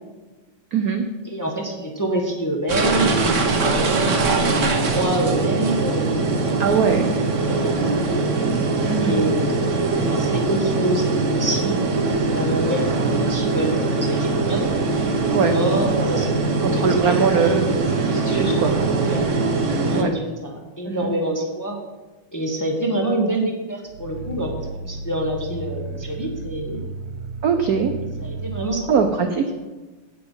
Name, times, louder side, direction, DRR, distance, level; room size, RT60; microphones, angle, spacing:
voice 1, 0.7-1.0 6.6-7.1 8.9-9.2 15.3-15.6 16.6-17.7 18.1-18.7 19.9-20.1 20.9-21.1 27.4-27.9 28.9-29.4, right 6 dB, 65° right, 6 dB, 0.9 m, -21 dB
voice 2, 1.2-7.0 7.4-7.7 8.1-8.2 9.0-11.8 12.2-14.7 15.0-17.5 19.0-19.2 19.9-21.8 22.3-26.8 28.2-28.8, right 1 dB, 10° left, 0 dB, 1.0 m, -26 dB
sound 1, 2.7-20.0, right 3 dB, 45° right, 1.2 m, -22 dB
Growling, 23.9-28.8, right 3 dB, 85° right, 1.8 m, -33 dB
16.0 x 5.4 x 5.6 m, 1.2 s
omnidirectional pair, 2.4 m